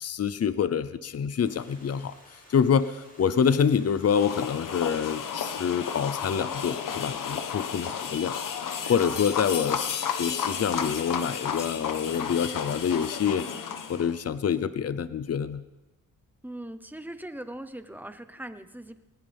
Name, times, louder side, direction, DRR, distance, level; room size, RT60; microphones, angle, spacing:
voice 1, 0.0-2.1 2.5-8.3 8.9-13.5 13.9-15.6, left 7 dB, 45° left, 14 dB, 0.8 m, -26 dB
Stream, 1.4-7.5, left 1 dB, 25° left, 6.1 m, -55 dB
sound 1, 4.1-14.2, left 7 dB, 65° left, 1.3 m, -33 dB
voice 2, 16.4-19.0, right 1 dB, 5° right, 10 dB, 1.0 m, -40 dB
21.0 x 19.0 x 3.6 m, 1.0 s
cardioid pair, 105°, 34 cm